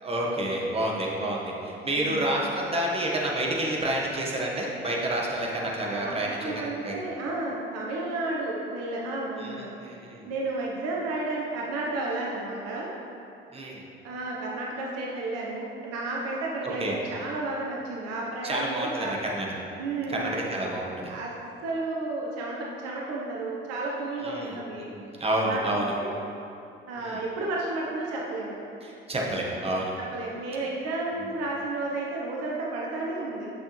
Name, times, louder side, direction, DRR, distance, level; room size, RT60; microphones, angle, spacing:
voice 1, 0.0-6.9 9.4-10.3 13.5-13.8 16.8-17.0 18.4-19.5 20.1-21.1 24.2-24.5 24.8-25.9 27.0-27.2 28.8-29.9, right 1 dB, 20° right, -3 dB, 1.4 m, -29 dB
voice 2, 1.9-2.4 5.9-12.9 14.0-19.2 19.8-20.3 21.1-21.3 21.6-24.9 25.5-26.1 26.9-28.6 30.0-33.5, right 2 dB, 55° right, -3 dB, 1.0 m, -32 dB
8.6 x 6.2 x 3.2 m, 2.7 s
figure-of-eight pair, 55°, 30 cm